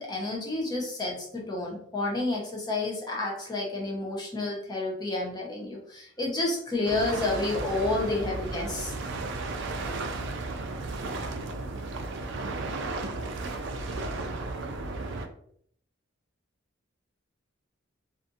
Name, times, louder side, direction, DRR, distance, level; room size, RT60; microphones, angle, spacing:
voice 1, 0.0-8.9, left 2 dB, 20° left, -2 dB, 0.7 m, -30 dB
sound 1, 6.8-15.3, right 3 dB, 65° right, 0.4 m, -34 dB
2.5 x 2.5 x 2.6 m, 0.66 s
head